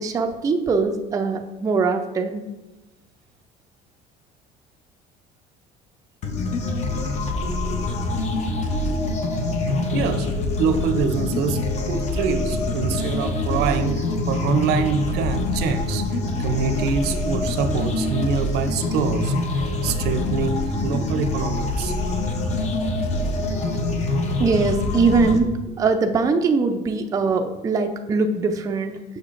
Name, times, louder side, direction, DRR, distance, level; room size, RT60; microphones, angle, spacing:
voice 1, 0.0-2.4 22.0-22.2 23.5-23.8 24.4-29.2, right 4 dB, 20° right, 5 dB, 0.4 m, -22 dB
sound 1, 6.2-25.4, left 2 dB, 40° left, 0.7 m, -25 dB
voice 2, 9.9-10.3 10.6-21.9, right 6 dB, 65° right, 10 dB, 0.6 m, -25 dB
6.5 x 6.3 x 2.5 m, 1.1 s
cardioid pair, 140°, 18 cm